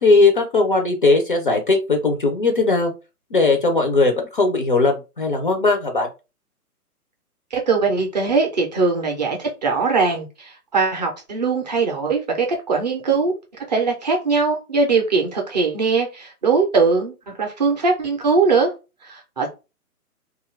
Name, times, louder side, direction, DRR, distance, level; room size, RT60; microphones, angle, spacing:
voice 1, 0.0-2.9 3.3-6.1, left 3 dB, 35° left, 0.4 m, -18 dB
voice 2, 7.5-13.4 13.7-18.7 19.0-19.5, right 4 dB, 30° right, 0.5 m, -21 dB
2.5 x 2.4 x 3.1 m
figure-of-eight pair, 130°, 46 cm